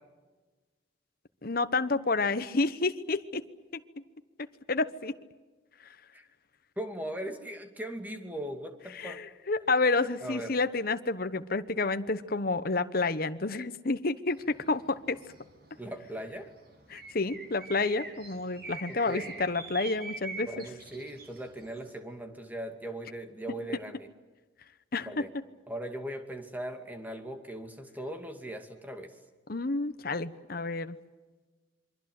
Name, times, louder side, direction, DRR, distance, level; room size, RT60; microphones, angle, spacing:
voice 1, 1.4-3.4 3.7-3.8 4.7-5.1 8.9-15.2 16.9-20.5 24.9-25.2 29.5-31.0, left 3 dB, 50° left, 11 dB, 1.1 m, -29 dB
voice 2, 6.8-9.2 10.2-10.6 15.8-16.5 18.9-19.3 20.4-24.1 25.0-25.3 25.7-29.2, right 1 dB, 10° right, 5 dB, 2.5 m, -39 dB
sound 1, 14.3-21.9, right 3 dB, 55° right, 6.3 m, -45 dB
27.5 x 24.0 x 7.9 m, 1.3 s
head